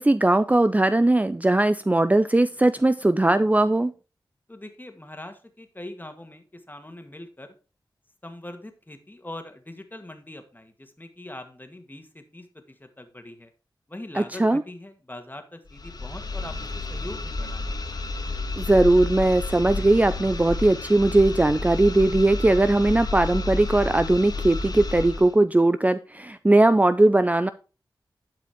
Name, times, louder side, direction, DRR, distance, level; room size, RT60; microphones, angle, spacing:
voice 1, 0.0-3.9 14.2-14.6 18.6-27.5, right 2 dB, 20° right, 12 dB, 0.5 m, -19 dB
voice 2, 4.5-7.5 8.2-13.5 13.9-16.5 16.9-17.7, left 1 dB, 25° left, 7 dB, 2.0 m, -42 dB
sound 1, 15.7-25.3, left 3 dB, 55° left, 1.6 m, -31 dB
11.5 x 4.9 x 4.5 m, 0.34 s
cardioid pair, 45°, 8 cm